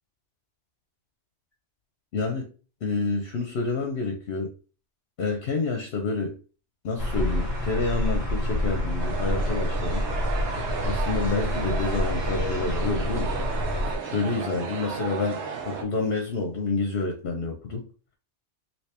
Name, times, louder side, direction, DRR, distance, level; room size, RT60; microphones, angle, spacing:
voice 1, 2.1-2.5 2.8-4.5 5.2-6.4 6.8-10.0 10.8-13.4 14.0-17.9, left 3 dB, 65° left, 0.9 m, -28 dB
sound 1, 7.0-14.0, left 1 dB, 50° right, 1.8 m, -28 dB
sound 2, 9.0-15.8, right 5 dB, 80° right, 1.0 m, -34 dB
3.2 x 2.9 x 2.8 m
omnidirectional pair, 1.2 m